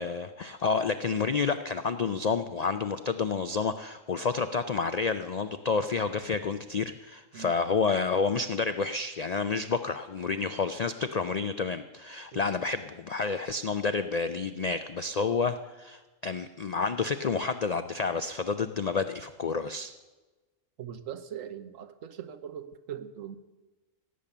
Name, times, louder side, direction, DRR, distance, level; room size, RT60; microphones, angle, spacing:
voice 1, 0.0-19.9, left 4 dB, 75° left, 10 dB, 0.3 m, -29 dB
voice 2, 20.8-23.4, right 9 dB, 75° right, 11 dB, 1.3 m, -41 dB
16.5 x 8.6 x 6.7 m, 1.2 s
omnidirectional pair, 1.4 m